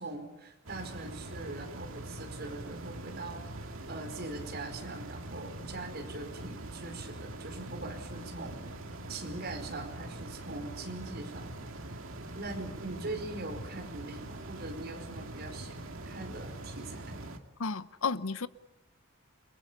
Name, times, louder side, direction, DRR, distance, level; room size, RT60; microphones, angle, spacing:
voice 1, 0.0-8.6 9.1-11.5 12.3-17.2, right 2 dB, 50° right, 5.0 m, -42 dB
sound 1, 0.7-17.4, right 1 dB, 70° right, 2.2 m, -43 dB
voice 2, 17.6-18.5, left 4 dB, 75° left, 0.8 m, -32 dB
29.0 x 22.5 x 7.0 m
head